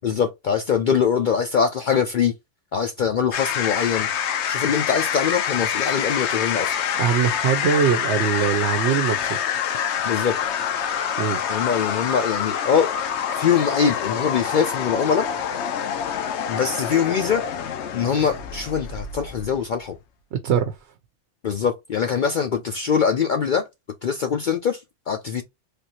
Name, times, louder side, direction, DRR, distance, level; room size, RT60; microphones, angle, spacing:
voice 1, 0.0-2.3 2.7-4.1 4.5-6.7 10.0-10.3 11.5-12.9 13.4-15.3 16.5-17.4 17.9-20.0 21.4-23.7 24.0-25.4, left 7 dB, 55° left, 0.6 m, -23 dB
sound 1, 3.3-19.7, left 8 dB, 80° left, 0.9 m, -26 dB
voice 2, 7.0-9.4 11.2-11.4 20.3-20.8, right 7 dB, 75° right, 0.9 m, -22 dB
3.4 x 2.6 x 2.8 m
omnidirectional pair, 1.2 m